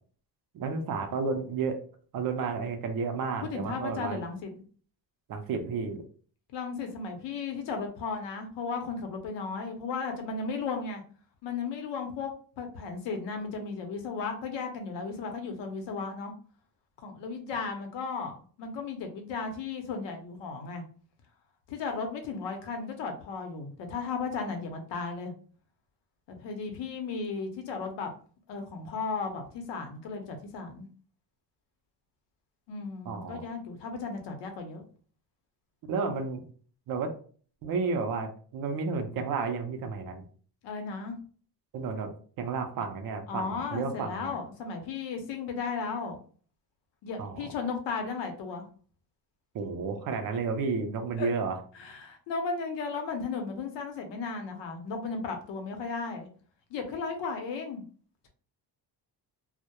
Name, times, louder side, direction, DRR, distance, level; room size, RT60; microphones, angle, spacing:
voice 1, 0.5-1.8 2.1-4.2 5.3-6.0 33.1-33.4 35.8-36.5 36.9-37.1 37.6-40.2 41.7-42.1 42.4-44.3 47.2-47.4 49.5-51.6, right 4 dB, 50° right, 6 dB, 0.4 m, -32 dB
voice 2, 3.4-4.5 6.5-11.0 11.4-12.3 12.6-16.3 17.0-20.8 21.7-25.3 26.3-28.1 28.5-30.9 32.7-34.8 40.6-41.2 43.3-46.2 47.0-48.7 51.2-51.3 51.8-56.3 56.7-57.8, left 4 dB, 70° left, 5 dB, 0.7 m, -35 dB
2.2 x 2.0 x 2.8 m, 0.43 s
cardioid pair, 160°, 44 cm